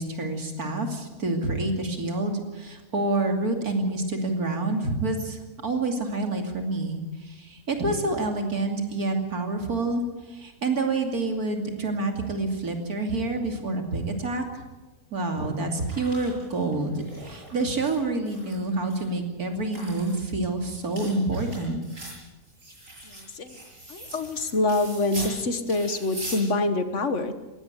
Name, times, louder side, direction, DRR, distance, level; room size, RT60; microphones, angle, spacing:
voice 1, 0.0-14.4 15.1-21.8, right 2 dB, 75° right, 3 dB, 3.2 m, -28 dB
sound 1, 15.3-18.0 18.2-19.0 19.5-25.4 25.6-26.4, right 1 dB, 55° right, 7.8 m, -41 dB
voice 2, 23.9-27.3, left 2 dB, 55° left, 9 dB, 1.6 m, -25 dB
19.5 x 17.0 x 8.1 m, 1.2 s
omnidirectional pair, 1.6 m